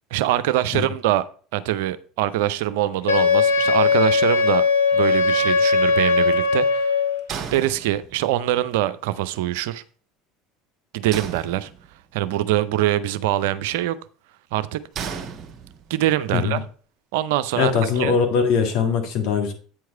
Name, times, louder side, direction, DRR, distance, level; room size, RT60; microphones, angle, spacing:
voice 1, 0.1-1.2 1.5-4.6 4.9-7.0 7.5-9.8 10.9-11.7 12.1-14.0 14.5-14.8 15.9-16.6 17.1-18.1, right 13 dB, 70° right, 0.5 m, -23 dB
Wind instrument woodwind instrument, 3.1-7.2, left 4 dB, 85° left, 0.9 m, -19 dB
sound 1, 7.3-8.4 11.1-12.1 15.0-16.1, right 7 dB, 40° right, 1.2 m, -34 dB
voice 2, 17.6-19.5, left 6 dB, 60° left, 1.8 m, -21 dB
8.8 x 4.7 x 4.6 m
hypercardioid pair, 70°, 0 cm